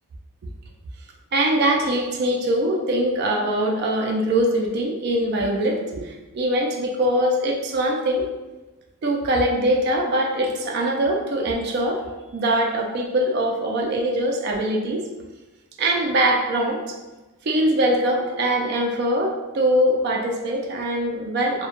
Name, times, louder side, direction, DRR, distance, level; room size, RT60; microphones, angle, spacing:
voice 1, 1.3-8.3 9.0-12.0 12.3-15.0 15.8-16.9 17.5-21.7, right 1 dB, 45° right, 0 dB, 0.3 m, -22 dB
2.2 x 2.1 x 2.9 m, 1.1 s
head